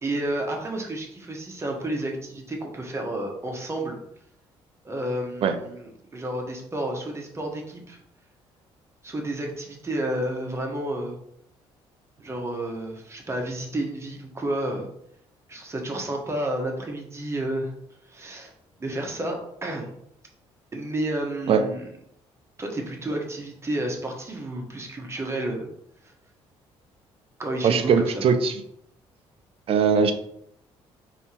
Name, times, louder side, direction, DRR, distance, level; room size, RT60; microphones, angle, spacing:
voice 1, 0.0-4.0 4.8-8.0 9.0-11.2 12.2-14.9 15.5-17.7 18.1-18.5 18.8-19.9 20.7-21.9 22.6-25.7 27.4-28.2, right 1 dB, 25° right, 1 dB, 1.1 m, -31 dB
voice 2, 27.6-28.6 29.7-30.1, right 6 dB, 60° right, 8 dB, 0.5 m, -20 dB
3.5 x 2.8 x 4.4 m, 0.73 s
cardioid pair, 80°, 11 cm